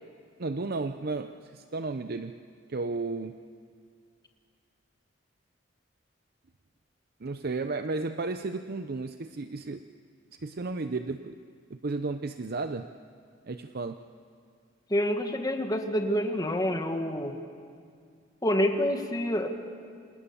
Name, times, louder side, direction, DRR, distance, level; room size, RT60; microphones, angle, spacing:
voice 1, 0.4-2.4 2.7-3.4 7.2-9.8 10.4-11.4 11.7-12.9 13.5-14.0, right 3 dB, 55° right, 9 dB, 0.7 m, -33 dB
voice 2, 14.9-17.4 18.4-19.5, equal, 20° left, 4 dB, 2.0 m, -27 dB
27.5 x 27.0 x 7.1 m, 2.2 s
head